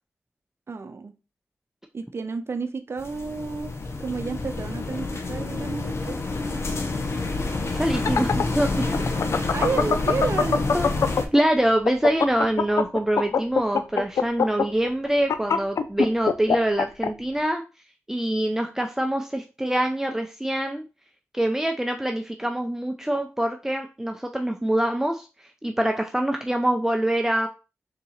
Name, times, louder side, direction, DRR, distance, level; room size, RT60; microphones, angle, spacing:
voice 1, 0.7-1.1 1.9-3.7 4.0-6.2 9.5-10.6, right 4 dB, 55° right, 9 dB, 0.6 m, -30 dB
sound 1, 3.0-11.3, left 3 dB, 60° left, 0.8 m, -28 dB
voice 2, 7.7-8.9 10.7-10.9 11.3-17.6 18.1-20.8 21.3-25.3 25.6-27.5, right 1 dB, 10° right, 4 dB, 0.5 m, -24 dB
sound 2, 7.8-11.4 11.7-17.1, left 5 dB, 75° left, 0.4 m, -22 dB
3.6 x 2.9 x 4.2 m, 0.31 s
cardioid pair, 60°, 5 cm